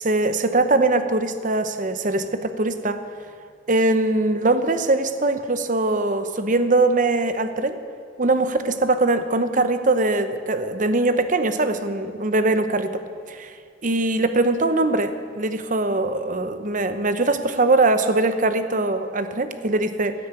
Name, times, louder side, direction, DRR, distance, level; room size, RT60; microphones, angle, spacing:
voice 1, 0.0-3.0 3.7-7.8 8.2-13.0 13.3-13.5 13.8-20.1, right 2 dB, 40° right, 10 dB, 0.8 m, -21 dB
16.0 x 8.4 x 8.9 m, 2.2 s
head